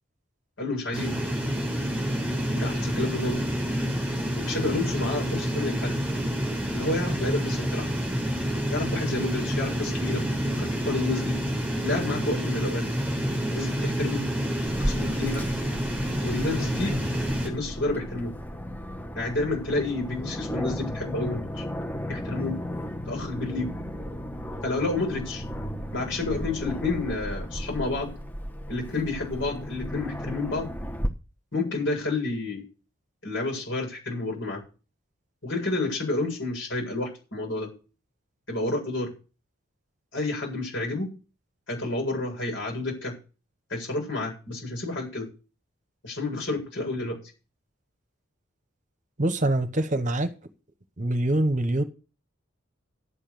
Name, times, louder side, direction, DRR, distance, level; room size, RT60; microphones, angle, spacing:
voice 1, 0.6-1.1 2.5-3.4 4.3-5.9 6.7-7.9 8.7-10.2 10.6-11.4 11.8-12.9 13.5-14.2 14.8-15.4 16.2-16.9 17.4-18.3 19.1-21.6 22.1-22.6 23.1-23.7 24.6-25.4 25.9-28.1 28.7-30.7 31.5-32.6 33.2-34.6 35.4-37.7 38.5-39.1 40.1-41.1 41.7-43.1 43.7-45.3 46.0-47.2, left 2 dB, 65° left, 8.0 m, -30 dB
sound 1, 0.9-17.5, equal, 10° right, 3.9 m, -28 dB
Aircraft, 14.7-31.1, equal, 10° left, 1.0 m, -34 dB
voice 2, 49.2-50.3 51.0-51.8, right 1 dB, 35° right, 1.1 m, -24 dB
11.0 x 8.3 x 6.9 m
head